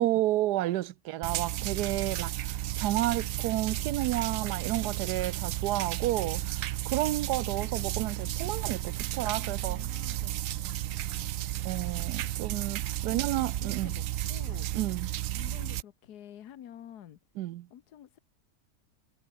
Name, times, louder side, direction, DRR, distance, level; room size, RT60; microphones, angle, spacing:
voice 1, 0.0-9.8 11.6-13.9 14.7-15.1 17.4-17.7, right 15 dB, 90° right, 1.2 m, -31 dB
sound 1, 1.2-15.8, right 14 dB, 70° right, 0.9 m, -33 dB
voice 2, 9.0-11.4 13.1-14.7 15.3-17.2 17.7-18.2, left 10 dB, 80° left, 1.5 m, -50 dB
omnidirectional pair, 1.7 m